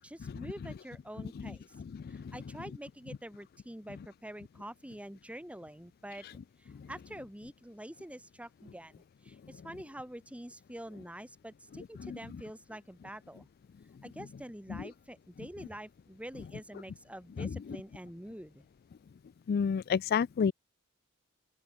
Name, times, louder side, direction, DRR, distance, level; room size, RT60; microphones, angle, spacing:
voice 1, 0.0-1.7 2.1-6.3 6.6-13.5 14.0-18.6, right 1 dB, 5° right, 2.8 m, -46 dB
voice 2, 1.9-2.2 12.0-12.2 14.7-14.8 17.4-17.5 19.5-20.5, left 6 dB, 45° left, 0.3 m, -30 dB
open air
head